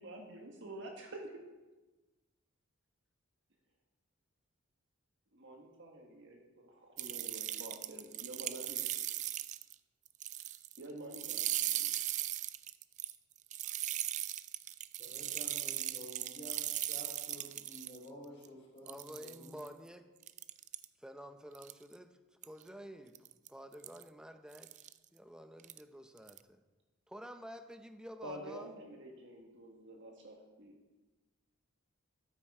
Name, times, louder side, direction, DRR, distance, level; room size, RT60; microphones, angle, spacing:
voice 1, 0.0-1.3 5.3-8.9 10.8-11.9 28.2-30.8, right 1 dB, 60° right, 1 dB, 1.6 m, -48 dB
sound 1, 7.0-9.7 10.1-10.8 11.1-18.0 18.4-18.5 18.9-19.7 20.2-20.8 21.5-21.9 22.4-22.6 23.1-23.5 23.8-24.0 24.5-24.9 25.6-25.8 26.2-26.4, right 13 dB, 35° right, 0.3 m, -38 dB
voice 2, 15.0-19.6, equal, 30° left, -9 dB, 3.5 m, -51 dB
voice 3, 18.8-20.1 21.0-22.2 22.4-24.9 25.1-26.6 27.1-28.7, equal, 5° right, 8 dB, 0.7 m, -50 dB
13.0 x 8.9 x 4.9 m, 1.2 s
head